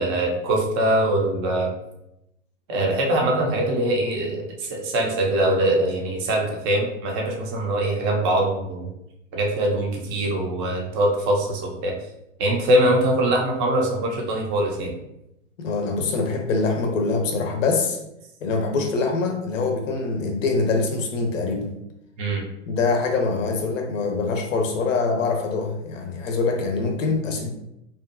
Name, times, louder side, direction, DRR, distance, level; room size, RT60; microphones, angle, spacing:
voice 1, 0.0-1.7 2.7-8.9 9.3-11.9 12.4-14.9 22.2-22.4, right 1 dB, 20° right, -1 dB, 0.4 m, -22 dB
voice 2, 15.6-18.0 18.4-21.7 22.7-27.5, left 4 dB, 75° left, 4 dB, 0.6 m, -24 dB
2.6 x 2.3 x 2.4 m, 0.85 s
hypercardioid pair, 120°, 39 cm